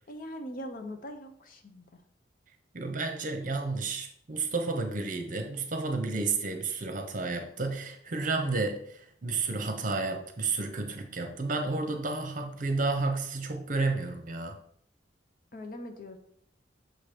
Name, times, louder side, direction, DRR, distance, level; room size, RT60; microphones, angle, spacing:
voice 1, 0.1-1.9 15.5-16.2, left 1 dB, 50° left, 5 dB, 0.8 m, -41 dB
voice 2, 2.7-14.6, right 3 dB, 50° right, 5 dB, 0.9 m, -31 dB
6.5 x 2.9 x 5.0 m, 0.66 s
head